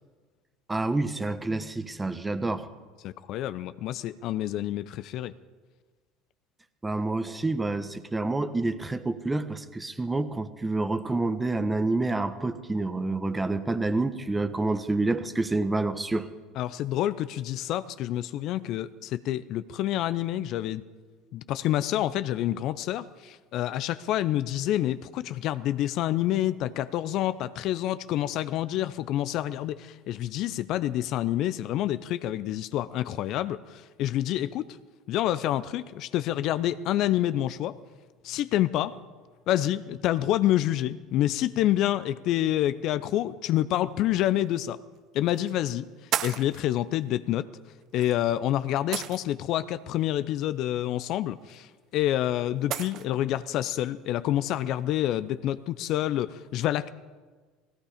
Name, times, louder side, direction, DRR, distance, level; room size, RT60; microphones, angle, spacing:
voice 1, 0.7-2.7 6.8-16.3, right 2 dB, 15° right, 12 dB, 1.2 m, -28 dB
voice 2, 3.0-5.3 16.6-20.8 21.3-34.7 35.1-37.8 38.2-39.0 39.5-44.8 45.1-45.9 46.2-47.5 47.9-56.9, left 13 dB, 60° left, 15 dB, 0.6 m, -28 dB
sound 1, 44.1-44.2 45.3-45.5 46.1-46.6 48.0-48.1 48.9-49.5 51.5-51.6 52.7-53.1, right 11 dB, 50° right, 0.7 m, -32 dB
17.5 x 16.0 x 5.1 m, 1.4 s
hypercardioid pair, 75°, 0 cm